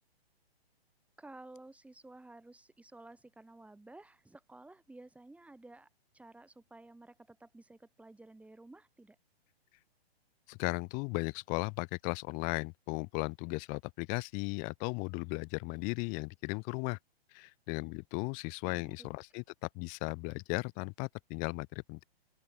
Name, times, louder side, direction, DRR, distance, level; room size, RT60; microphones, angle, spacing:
voice 1, 1.2-5.9 6.1-9.2 18.6-19.1, right 2 dB, 5° right, 4.2 m, -54 dB
voice 2, 10.5-17.0 17.3-22.0, left 33 dB, 25° left, 0.8 m, -36 dB
open air
hypercardioid pair, 130°, 32 cm